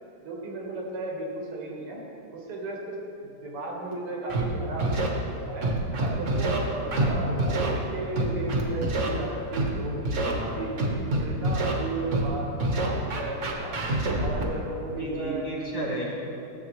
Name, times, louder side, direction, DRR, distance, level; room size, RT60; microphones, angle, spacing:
voice 1, 0.2-2.0 2.3-3.0 3.2-5.2 5.5-5.7 6.0-10.7 11.1-13.7 14.2-15.5 15.8-16.1, right 2 dB, 90° right, -1 dB, 2.4 m, -35 dB
Scratching (performance technique), 4.3-4.4 4.8-5.1 5.6-6.6 6.9-7.1 7.4-7.7 8.2-9.1 9.5-9.7 10.1-10.3 10.8-11.7 12.1-12.3 12.6-14.4, right 2 dB, 45° right, 1.0 m, -26 dB
voice 2, 10.2-10.6 14.9-16.1, right 1 dB, 45° left, -4 dB, 1.2 m, -33 dB
14.0 x 7.5 x 3.1 m, 2.8 s
omnidirectional pair, 2.4 m